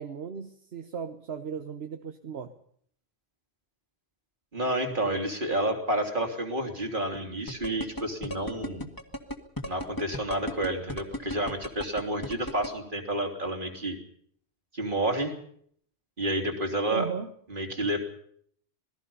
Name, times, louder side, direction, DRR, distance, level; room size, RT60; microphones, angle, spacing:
voice 1, 0.0-2.5 16.9-17.3, right 6 dB, 75° right, 7 dB, 1.4 m, -36 dB
voice 2, 4.5-8.9 9.6-14.0 14.7-15.3 16.2-17.1 17.5-18.0, right 1 dB, 55° right, 3 dB, 3.5 m, -30 dB
sound 1, 7.5-12.7, left 1 dB, 20° left, 1.9 m, -34 dB
27.0 x 20.0 x 5.6 m, 0.64 s
omnidirectional pair, 1.1 m